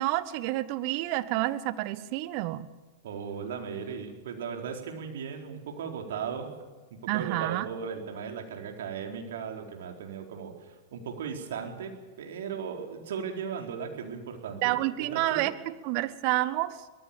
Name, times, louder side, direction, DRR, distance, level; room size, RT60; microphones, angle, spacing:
voice 1, 0.0-2.7 7.1-7.6 14.6-16.8, right 16 dB, 45° right, 14 dB, 1.3 m, -29 dB
voice 2, 3.0-6.5 7.1-11.9 12.2-14.8 15.1-15.4, right 6 dB, 65° right, 3 dB, 4.3 m, -37 dB
24.0 x 19.0 x 7.2 m, 1.3 s
figure-of-eight pair, 95°, 0 cm